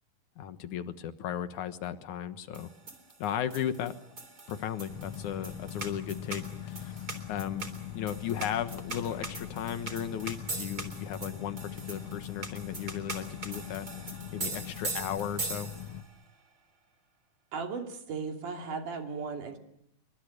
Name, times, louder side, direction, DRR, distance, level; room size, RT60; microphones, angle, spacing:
voice 1, 0.4-2.7 3.2-3.9 4.5-7.7 7.9-13.9 14.3-15.7, left 9 dB, 70° left, 10 dB, 2.7 m, -35 dB
sound 1, 2.5-16.1, right 3 dB, 30° right, 3.9 m, -41 dB
sound 2, 4.9-16.0, left 10 dB, 55° left, 1.8 m, -42 dB
voice 2, 17.5-19.6, right 5 dB, 75° right, 3 dB, 4.4 m, -36 dB
29.0 x 24.0 x 6.6 m, 0.75 s
omnidirectional pair, 3.7 m